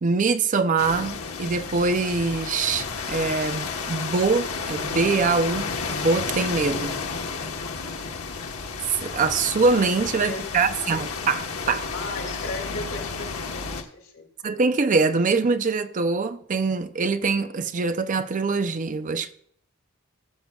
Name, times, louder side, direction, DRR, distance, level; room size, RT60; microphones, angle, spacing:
voice 1, 0.0-7.0 9.0-11.9 14.4-19.3, right 4 dB, 35° right, 0.5 m, -24 dB
sound 1, 0.8-13.8, left 4 dB, 90° left, 1.2 m, -32 dB
voice 2, 10.0-10.7 11.9-14.3, left 3 dB, 70° left, 3.1 m, -36 dB
15.5 x 7.6 x 2.3 m
head